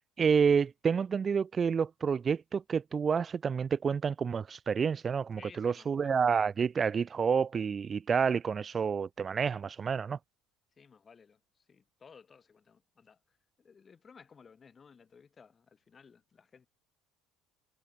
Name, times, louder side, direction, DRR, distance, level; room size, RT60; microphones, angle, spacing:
voice 1, 0.0-10.2, right 6 dB, 35° right, 0.7 m, -29 dB
voice 2, 5.4-6.2 10.8-16.7, left 6 dB, 30° left, 7.8 m, -57 dB
hypercardioid pair, 80°, 0 cm